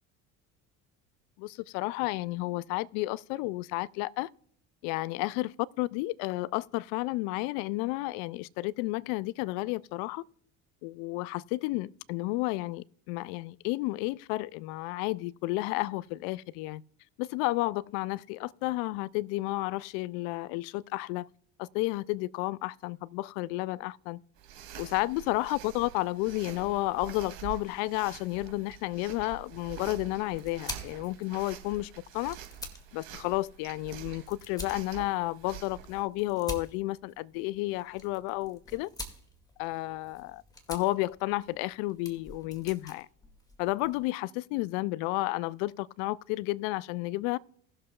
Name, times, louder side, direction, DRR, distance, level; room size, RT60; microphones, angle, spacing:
voice 1, 1.4-4.3 4.8-10.2 10.8-16.8 17.2-21.3 21.6-24.2 24.8-32.4 32.9-38.9 39.6-40.4 40.7-43.1 43.6-47.4, left 19 dB, 60° left, 0.5 m, -32 dB
sound 1, 24.4-36.0, right 11 dB, 65° right, 2.4 m, -46 dB
sound 2, 29.6-44.1, left 2 dB, 10° left, 2.1 m, -47 dB
19.5 x 6.6 x 2.3 m
hypercardioid pair, 65°, 42 cm